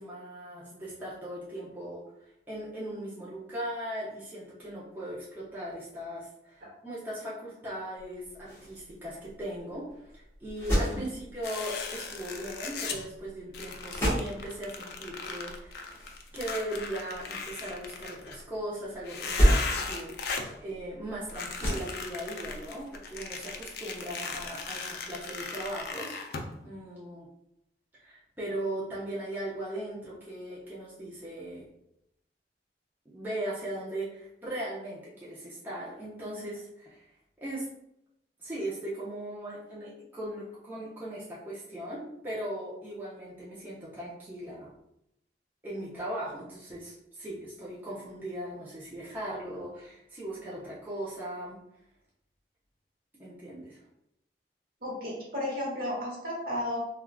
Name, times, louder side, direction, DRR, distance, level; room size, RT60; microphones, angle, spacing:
voice 1, 0.0-16.0 16.3-26.2 26.6-27.3 28.0-31.7 33.1-37.1 37.4-37.7 38.4-44.7 45.6-51.6 53.2-53.8, right 1 dB, 10° right, -9 dB, 0.6 m, -38 dB
sound 1, 8.0-25.9, equal, 15° left, 1.2 m, -34 dB
sound 2, 11.4-13.0 13.5-18.4 19.0-20.5 21.3-26.5, left 4 dB, 65° left, 0.4 m, -38 dB
voice 2, 54.8-56.8, left 1 dB, 55° right, -3 dB, 1.0 m, -33 dB
3.4 x 2.3 x 2.3 m, 0.81 s
head